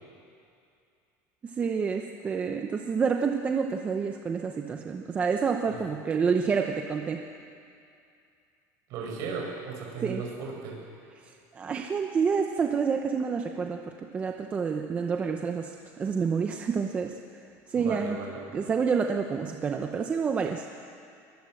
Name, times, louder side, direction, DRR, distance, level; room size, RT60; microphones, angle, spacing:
voice 1, 1.4-7.2 10.0-10.2 11.5-17.2 17.7-18.2 18.5-20.7, right 5 dB, 20° right, 4 dB, 0.8 m, -28 dB
voice 2, 8.9-10.8 17.7-18.6, right 5 dB, 45° right, 0 dB, 6.0 m, -36 dB
22.5 x 21.0 x 7.8 m, 2.5 s
cardioid pair, 170°, 8 cm